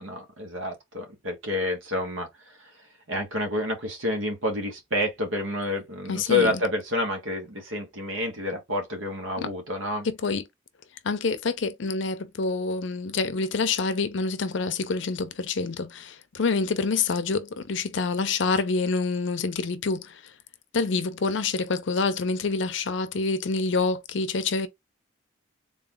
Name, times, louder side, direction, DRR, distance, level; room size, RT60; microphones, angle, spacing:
voice 1, 0.0-2.7 3.1-10.1, left 2 dB, 80° right, 1.3 m, -29 dB
voice 2, 6.1-6.5 9.4-9.5 10.0-10.4 11.0-20.3 20.7-24.7, left 4 dB, 70° left, 0.6 m, -27 dB
3.7 x 2.4 x 3.7 m
head